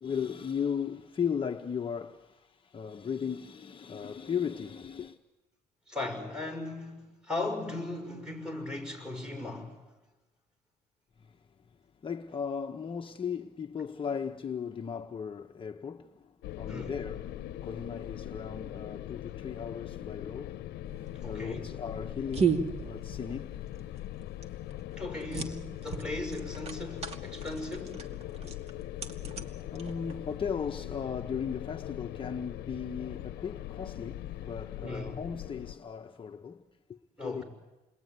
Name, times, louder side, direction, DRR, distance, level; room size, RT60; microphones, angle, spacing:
voice 1, 0.0-5.2 11.2-11.4 12.0-20.6 21.3-23.6 28.4-37.0 37.2-37.4, left 7 dB, 30° left, 1.0 m, -37 dB
voice 2, 5.9-9.8 16.7-16.9 21.2-21.8 25.0-28.0 34.8-35.2 37.2-37.4, left 2 dB, 5° right, 6.2 m, -37 dB
sound 1, 16.4-35.8, left 13 dB, 80° left, 0.9 m, -41 dB
sound 2, 20.8-30.4, right 6 dB, 40° right, 2.4 m, -36 dB
29.5 x 21.5 x 9.5 m
cardioid pair, 110°, 17 cm